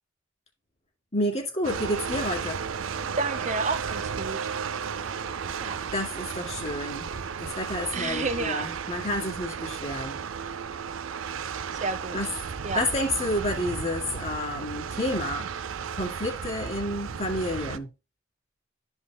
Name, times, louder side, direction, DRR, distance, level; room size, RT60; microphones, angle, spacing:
voice 1, 1.1-2.6 5.9-10.2 12.1-12.3 12.7-15.5 15.9-17.9, left 1 dB, 35° left, 2.0 m, -30 dB
sound 1, 1.6-17.8, right 6 dB, 80° right, 0.5 m, -34 dB
voice 2, 3.2-4.5 5.6-5.9 7.9-8.7 11.8-12.2 12.6-12.9, right 4 dB, 35° right, 0.7 m, -30 dB
12.5 x 5.5 x 2.2 m
head